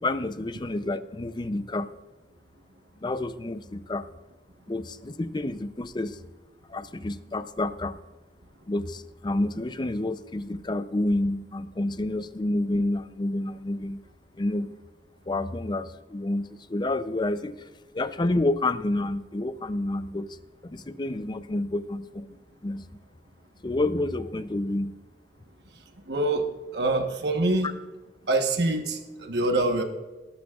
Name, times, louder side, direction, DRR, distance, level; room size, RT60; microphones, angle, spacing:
voice 1, 0.0-1.9 3.0-4.1 4.7-6.2 6.7-8.0 8.7-14.0 14.4-14.7 15.3-17.7 17.9-20.4 20.6-22.9 23.6-25.0, left 2 dB, 25° left, 12 dB, 0.5 m, -29 dB
voice 2, 26.1-27.8 28.3-29.8, right 2 dB, 65° right, 5 dB, 1.2 m, -25 dB
18.5 x 12.5 x 2.4 m, 1.2 s
head